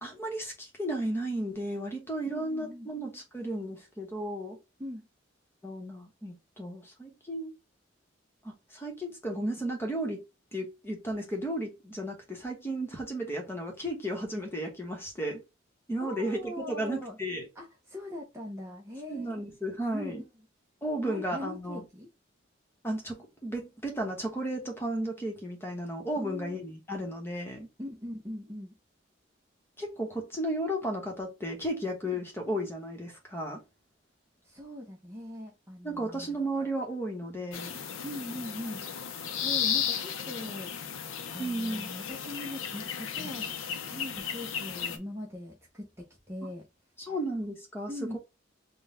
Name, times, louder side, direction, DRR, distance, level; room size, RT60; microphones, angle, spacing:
voice 1, 0.0-4.6 5.6-7.5 8.4-10.2 10.5-15.4 15.9-17.5 19.1-20.2 20.8-21.8 22.8-27.7 29.8-33.6 35.8-37.7 41.4-41.9 47.0-48.2, right 1 dB, 10° left, 0.9 m, -34 dB
voice 2, 2.3-2.9 4.8-5.1 16.0-17.2 17.6-19.4 19.9-20.3 21.0-22.1 26.2-26.6 27.8-28.8 32.0-32.2 34.4-36.4 38.0-43.5 43.8-46.7 47.0-47.1 47.9-48.2, left 1 dB, 15° right, 0.6 m, -41 dB
sound 1, 37.5-45.0, left 8 dB, 85° left, 0.6 m, -34 dB
3.8 x 2.2 x 3.8 m
head